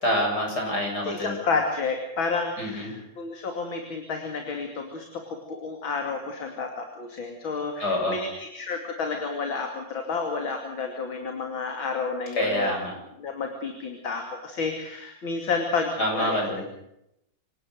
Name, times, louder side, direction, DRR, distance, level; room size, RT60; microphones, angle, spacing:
voice 1, 0.0-1.3 2.6-2.9 7.8-8.2 12.4-12.9 16.0-16.6, left 1 dB, 50° left, 1 dB, 8.3 m, -26 dB
voice 2, 1.0-12.7 13.2-16.4, left 4 dB, 70° left, 3 dB, 3.4 m, -30 dB
27.0 x 18.5 x 6.5 m, 0.82 s
omnidirectional pair, 2.3 m